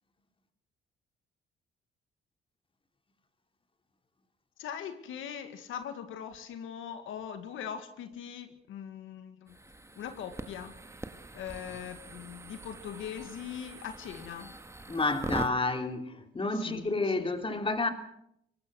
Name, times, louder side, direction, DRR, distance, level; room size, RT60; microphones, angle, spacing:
voice 1, 4.6-9.6 10.0-10.8 11.3-14.5 16.6-17.3, left 8 dB, 80° left, 2.0 m, -41 dB
sound 1, 9.5-15.5, right 2 dB, 15° right, 1.8 m, -43 dB
voice 2, 14.9-17.9, left 3 dB, 25° left, 3.3 m, -30 dB
24.0 x 19.0 x 6.4 m
cardioid pair, 90°, 20 cm